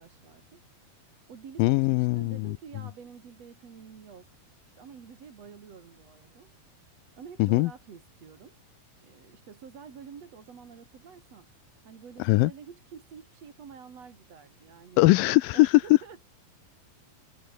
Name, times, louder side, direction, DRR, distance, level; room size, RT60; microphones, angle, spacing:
voice 1, 0.0-8.6 9.0-11.5 11.8-15.0 15.5-16.2, right 6 dB, 45° right, 3.3 m, -49 dB
voice 2, 1.6-2.6 7.4-7.7 12.2-12.5 15.0-15.7, left 20 dB, 80° left, 2.1 m, -21 dB
omnidirectional pair, 4.4 m